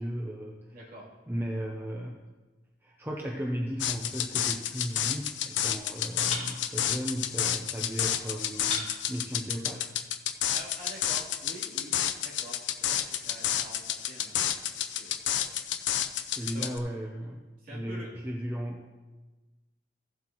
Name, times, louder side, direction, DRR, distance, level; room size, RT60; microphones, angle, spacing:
voice 1, 0.0-0.6 1.3-2.2 2.8-9.9 16.2-17.4 17.7-18.8, equal, 10° right, -1 dB, 0.7 m, -35 dB
voice 2, 0.7-1.1 10.5-15.6 16.5-16.7 17.6-18.1, right 1 dB, 45° right, -7 dB, 3.2 m, -47 dB
sound 1, 3.8-16.8, left 10 dB, 75° left, 0.5 m, -30 dB
sound 2, 4.4-5.6 6.2-7.8 8.6-10.2, left 3 dB, 35° left, 1.9 m, -42 dB
15.0 x 7.6 x 3.0 m, 1.2 s
head